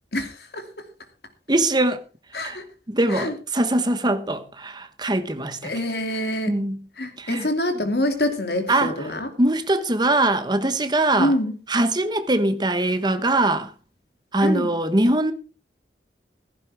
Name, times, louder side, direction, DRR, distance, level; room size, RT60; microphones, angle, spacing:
voice 1, 0.1-0.6 2.3-2.7 3.1-3.3 5.6-6.5 7.0-9.3 11.2-11.5 14.4-14.7, left 1 dB, 65° left, 2.7 m, -25 dB
voice 2, 1.5-2.0 2.4-2.6 2.9-5.7 6.5-6.8 7.2-7.5 8.7-8.9 9.4-11.3 11.7-13.7 14.3-15.3, right 1 dB, 25° right, 1.2 m, -22 dB
15.5 x 14.5 x 3.6 m
head